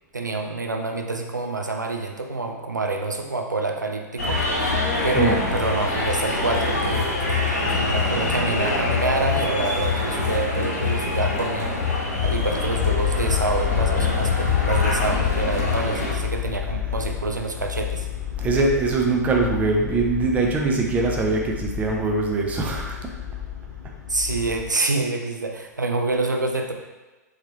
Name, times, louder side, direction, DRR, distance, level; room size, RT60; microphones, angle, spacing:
voice 1, 0.1-4.6 5.0-7.1 7.6-11.8 12.2-18.1 24.1-26.7, right 3 dB, 85° right, 3 dB, 0.4 m, -27 dB
sound 1, 4.2-16.2, left 4 dB, 60° left, 1.4 m, -24 dB
voice 2, 4.7-5.5 16.4-17.1 18.4-23.0, right 3 dB, 15° right, 0 dB, 0.5 m, -23 dB
sound 2, 12.2-24.7, left 11 dB, 5° left, 1.1 m, -30 dB
3.5 x 3.2 x 2.9 m, 1.2 s
figure-of-eight pair, 105°, 10 cm